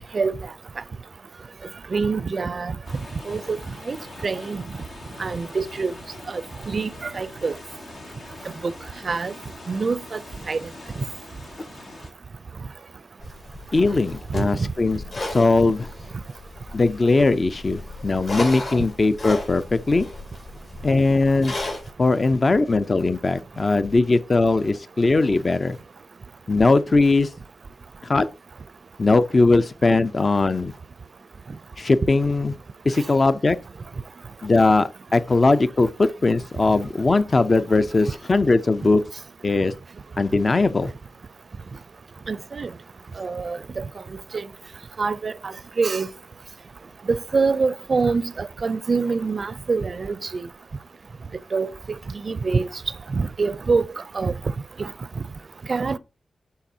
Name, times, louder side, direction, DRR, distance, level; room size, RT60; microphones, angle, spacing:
voice 1, 1.9-2.7 3.3-3.6 3.9-4.0 4.2-4.6 5.2-5.9 6.3-6.4 6.7-7.5 8.6-8.7 9.0-9.3 9.7-10.2 10.5-10.6 14.4-14.7 42.3-42.7 43.2-43.8 44.3-44.5 45.0-46.1 47.1-50.4 51.5-51.7 52.2-52.7 53.1-53.8 54.1-54.3 54.8-54.9 55.7-56.0, right 4 dB, 55° right, 0.5 m, -25 dB
sound 1, 2.8-12.1, left 2 dB, 85° left, 2.3 m, -42 dB
sound 2, 13.2-21.9, left 2 dB, 65° left, 4.2 m, -35 dB
voice 2, 13.7-15.0 15.3-15.9 16.7-20.1 20.8-21.5 22.0-25.8 26.5-27.3 28.1-28.3 29.0-30.7 31.8-32.5 32.8-33.6 34.4-39.0 39.4-39.7 40.2-40.9, left 3 dB, 45° left, 0.5 m, -19 dB
11.5 x 4.1 x 2.7 m
cardioid pair, 55°, 0 cm